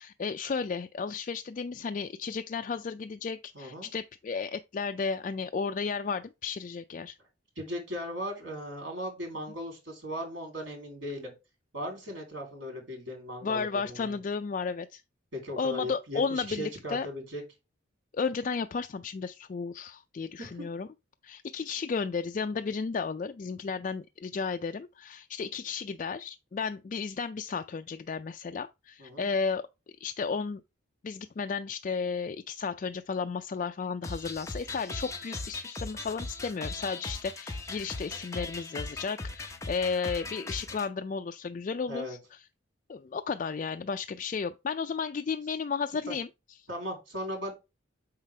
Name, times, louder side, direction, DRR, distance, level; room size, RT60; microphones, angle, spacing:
voice 1, 0.0-7.2 13.4-15.0 15.6-17.1 18.1-20.9 21.2-29.7 30.0-30.6 31.0-42.2 42.9-46.3, left 5 dB, 40° left, 0.3 m, -33 dB
voice 2, 3.5-3.9 7.5-11.3 11.7-14.2 15.3-17.4 20.4-20.6 29.0-29.3 41.9-42.2 46.1-46.2 46.7-47.5, equal, 60° right, 3.2 m, -37 dB
sound 1, 34.0-40.9, left 3 dB, 15° left, 0.8 m, -38 dB
7.3 x 5.7 x 3.3 m
head